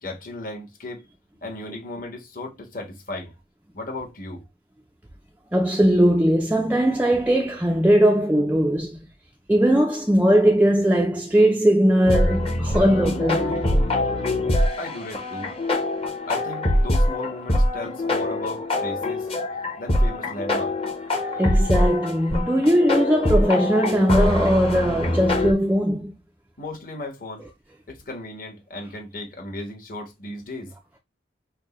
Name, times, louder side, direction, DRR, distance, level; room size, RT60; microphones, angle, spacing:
voice 1, 0.0-1.0 1.4-3.3 3.7-4.5 14.8-15.5 16.3-19.3 19.8-20.7 26.6-27.5 27.9-30.7, left 2 dB, 45° left, 1.3 m, -35 dB
voice 2, 5.5-9.0 9.5-13.8 21.4-26.1, equal, 10° right, 0.4 m, -19 dB
sound 1, 12.1-25.5, left 1 dB, 30° left, 0.9 m, -23 dB
6.3 x 2.2 x 3.0 m
head